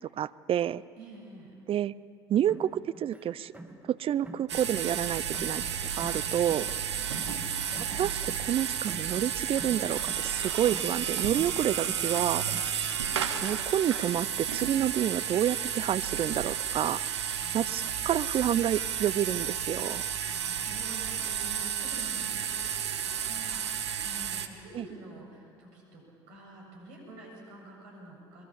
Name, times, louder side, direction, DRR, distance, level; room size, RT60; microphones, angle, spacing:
voice 1, 0.2-0.8 1.7-1.9 2.3-3.5 3.8-5.6 6.0-6.7 7.6-12.5 13.4-17.0 17.5-20.0 24.7-24.9, right 10 dB, 40° right, 18 dB, 0.6 m, -29 dB
voice 2, 1.0-1.5 6.9-8.4 13.0-13.4 17.4-18.1 20.0-28.4, right 2 dB, 65° right, -1 dB, 7.5 m, -49 dB
sound 1, 2.4-3.9 4.2-5.7 6.0-9.3 9.5-11.1 11.3-12.8, right 1 dB, 10° right, 2.8 m, -46 dB
sound 2, 4.5-24.5, right 8 dB, 85° right, 1.1 m, -32 dB
23.5 x 22.0 x 7.2 m, 2.5 s
figure-of-eight pair, 60°, 14 cm